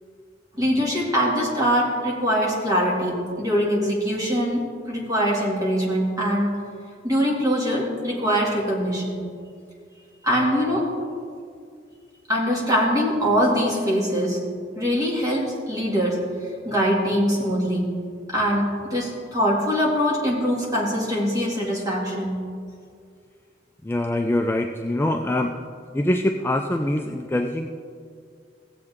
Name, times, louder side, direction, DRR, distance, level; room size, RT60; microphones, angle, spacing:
voice 1, 0.5-6.5 7.0-9.2 10.2-10.9 12.3-14.4 14.8-16.2 16.6-17.9 18.3-22.4, equal, 20° right, -4 dB, 2.3 m, -23 dB
voice 2, 23.8-25.5 25.9-27.7, left 1 dB, 10° left, 4 dB, 0.3 m, -24 dB
16.0 x 7.8 x 3.6 m, 2.2 s
head